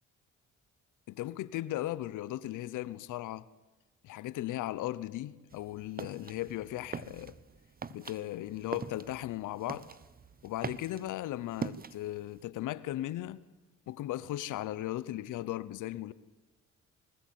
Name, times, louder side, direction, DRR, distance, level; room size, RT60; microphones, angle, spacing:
voice 1, 1.1-3.5 4.0-7.3 7.9-9.9 10.4-13.4 13.9-16.1, left 14 dB, 85° left, 1.0 m, -37 dB
sound 1, 5.5-12.4, right 5 dB, 30° right, 1.0 m, -44 dB
21.5 x 19.5 x 9.5 m
cardioid pair, 90°, 30 cm